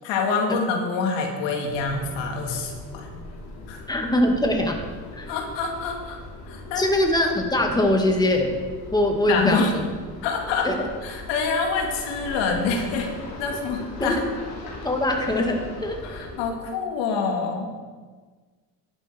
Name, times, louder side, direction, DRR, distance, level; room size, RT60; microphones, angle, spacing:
voice 1, 0.0-3.2 3.7-3.9 5.3-6.2 6.5-6.8 9.3-9.7 10.2-10.7 11.0-13.1 13.4-14.2 16.0-17.7, left 4 dB, 75° left, 2 dB, 2.0 m, -26 dB
sound 1, 1.7-16.5, left 2 dB, 55° left, 3.2 m, -39 dB
voice 2, 3.9-4.8 5.1-5.3 6.7-8.5 8.9-9.8 10.6-10.8 14.0-14.2 14.8-16.0, left 1 dB, 10° left, 2 dB, 2.1 m, -22 dB
11.5 x 9.1 x 4.5 m, 1.4 s
supercardioid pair, 70°, 43 cm